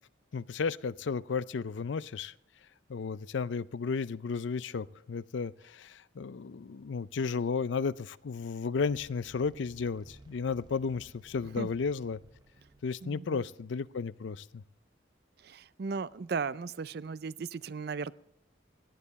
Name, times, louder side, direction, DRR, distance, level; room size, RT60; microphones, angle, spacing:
voice 1, 0.3-2.3 2.9-12.2 12.8-14.6, left 5 dB, 70° left, 18 dB, 0.5 m, -33 dB
sound 1, 8.7-13.9, right 1 dB, 20° right, 0.9 m, -57 dB
voice 2, 13.0-13.4 15.4-18.1, right 5 dB, 55° right, 18 dB, 0.4 m, -36 dB
17.0 x 11.0 x 4.1 m, 0.79 s
head